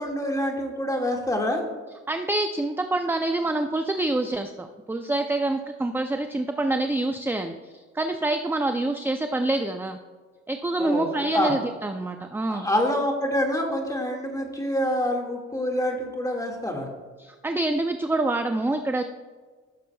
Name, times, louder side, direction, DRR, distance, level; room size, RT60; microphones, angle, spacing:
voice 1, 0.0-1.6 10.8-11.5 12.5-16.9, left 1 dB, 10° left, 1 dB, 1.9 m, -26 dB
voice 2, 2.1-10.0 10.5-12.7 17.2-19.0, right 2 dB, 5° right, 7 dB, 0.4 m, -26 dB
15.0 x 6.7 x 2.3 m, 1.4 s
cardioid pair, 90°, 30 cm